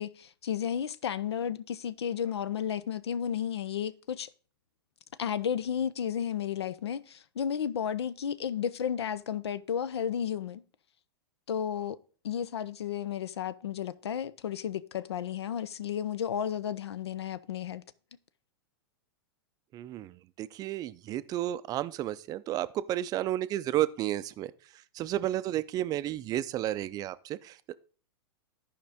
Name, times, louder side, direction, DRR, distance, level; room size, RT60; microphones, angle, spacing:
voice 1, 0.0-4.3 5.2-10.6 11.5-12.0 12.2-17.8, left 8 dB, 90° left, 0.5 m, -33 dB
voice 2, 19.7-24.5 24.9-27.7, right 13 dB, 30° right, 0.4 m, -32 dB
13.0 x 5.0 x 3.5 m
hypercardioid pair, 125°, 13 cm